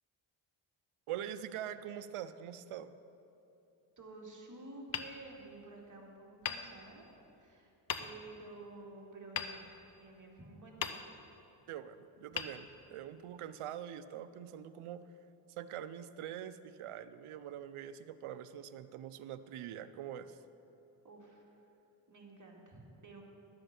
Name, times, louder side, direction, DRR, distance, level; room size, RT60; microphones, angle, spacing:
voice 1, 1.1-3.0 11.7-15.0 15.6-20.4, right 10 dB, 80° right, 12 dB, 0.7 m, -44 dB
voice 2, 4.0-7.1 7.4-7.7 8.0-9.7 10.0-11.0 21.0-21.6 22.1-23.2, right 2 dB, 35° right, -1 dB, 2.2 m, -51 dB
Hammer, 4.9-5.9 6.4-7.3 7.9-8.5 9.4-10.3 10.8-11.5 12.3-13.3, left 7 dB, 45° left, 0.7 m, -42 dB
12.0 x 7.8 x 5.9 m, 3.0 s
cardioid pair, 80°, 49 cm